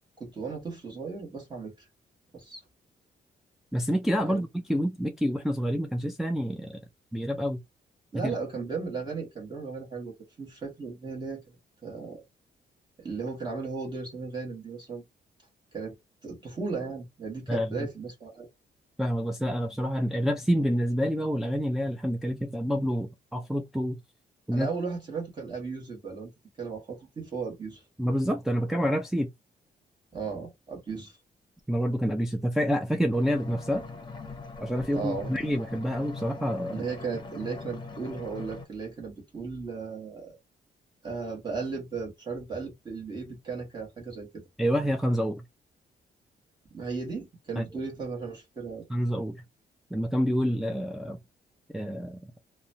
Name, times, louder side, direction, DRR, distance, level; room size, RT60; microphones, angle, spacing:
voice 1, 0.2-1.9 2.3-2.6 4.3-4.4 8.1-11.4 11.8-12.2 13.0-15.0 15.7-16.0 16.2-18.5 24.5-26.3 26.6-27.8 30.1-31.2 34.9-35.3 36.7-40.4 41.0-44.4 46.7-48.8, right 4 dB, 25° right, 1.3 m, -36 dB
voice 2, 3.7-6.8 7.1-7.6 17.5-17.8 19.0-24.0 24.5-24.7 28.0-29.3 31.7-33.8 34.6-36.8 44.6-45.4 47.6-47.7 48.9-49.4 49.9-51.2 51.7-52.3, equal, ahead, 0.3 m, -28 dB
sound 1, 33.1-38.7, left 3 dB, 25° left, 0.8 m, -41 dB
2.9 x 2.1 x 2.6 m
cardioid pair, 125°, 17 cm